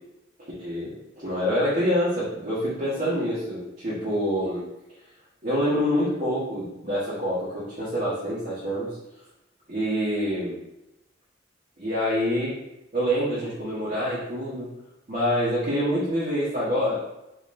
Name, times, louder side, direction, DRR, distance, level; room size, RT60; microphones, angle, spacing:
voice 1, 0.6-4.6 5.4-9.0 9.7-10.6 11.8-12.5 12.9-14.7 15.1-17.0, equal, 40° right, -11 dB, 1.2 m, -26 dB
4.0 x 3.1 x 2.5 m, 0.93 s
head